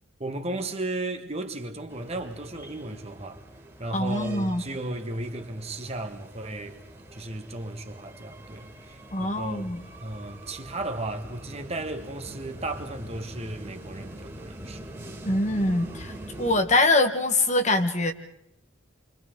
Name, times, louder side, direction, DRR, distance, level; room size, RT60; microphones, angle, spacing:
voice 1, 0.2-3.4 3.8-6.8 7.1-9.7 10.0-14.9 15.2-15.3, right 2 dB, 35° right, 1.8 m, -35 dB
sound 1, 1.9-16.6, right 1 dB, 15° right, 2.9 m, -44 dB
voice 2, 3.9-4.6 9.1-9.8 15.2-18.1, left 2 dB, 40° left, 1.5 m, -24 dB
29.0 x 25.5 x 3.9 m
head